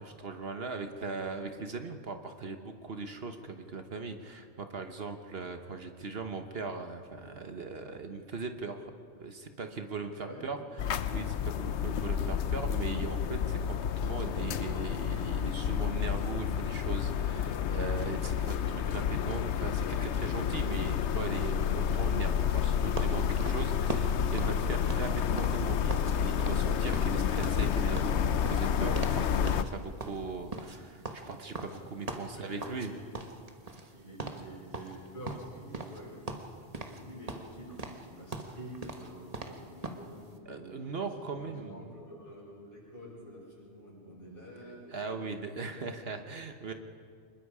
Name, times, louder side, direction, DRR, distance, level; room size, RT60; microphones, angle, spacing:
voice 1, 0.0-8.9 9.2-10.6 10.8-32.9 40.5-41.9 44.9-46.7, right 4 dB, 60° right, 6 dB, 1.3 m, -39 dB
sound 1, 10.8-29.6, left 8 dB, 80° left, 1.0 m, -30 dB
sound 2, 23.0-26.1 26.4-26.7 26.9-29.2 29.5-29.7 30.0-32.9 33.1-33.9 34.2-34.4 34.7-36.0 36.3-37.0 37.3-40.1, right 3 dB, 35° right, 1.4 m, -40 dB
voice 2, 32.2-33.2 33.9-36.4 36.8-46.0, equal, 50° left, -5 dB, 6.9 m, -48 dB
25.5 x 21.0 x 4.9 m, 2.2 s
omnidirectional pair, 1.2 m